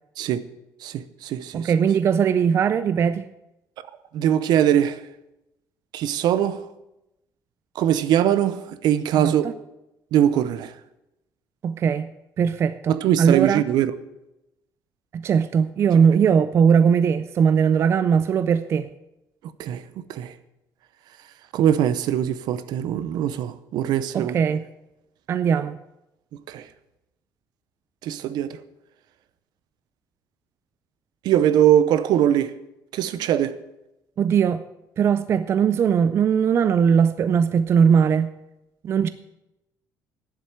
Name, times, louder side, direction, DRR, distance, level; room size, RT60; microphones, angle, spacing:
voice 1, 0.8-1.7 4.1-5.0 5.9-6.7 7.7-9.5 10.1-10.7 12.9-13.9 19.6-20.3 21.5-24.4 26.5-26.7 28.0-28.6 31.2-32.6 32.9-33.6, right 10 dB, 70° right, 0.7 m, -21 dB
voice 2, 1.5-3.3 9.2-9.5 11.6-12.1 12.4-13.6 15.1-18.9 24.1-24.6 25.3-25.8 34.2-34.6 35.0-38.3 38.8-39.1, right 7 dB, 35° right, 0.4 m, -20 dB
10.5 x 7.6 x 8.8 m
cardioid pair, 170°, 8 cm